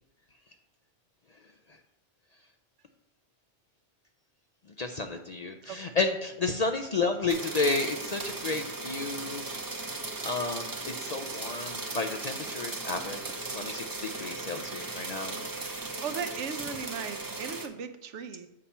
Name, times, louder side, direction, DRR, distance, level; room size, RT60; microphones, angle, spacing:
voice 1, 4.8-9.4 10.2-10.7 11.0-15.4, left 3 dB, 55° left, 5 dB, 0.4 m, -31 dB
sound 1, 7.3-17.7, right 3 dB, 25° right, 0.5 m, -37 dB
voice 2, 16.0-18.5, right 6 dB, 85° right, 9 dB, 1.0 m, -37 dB
7.4 x 4.2 x 5.6 m, 0.85 s
omnidirectional pair, 1.2 m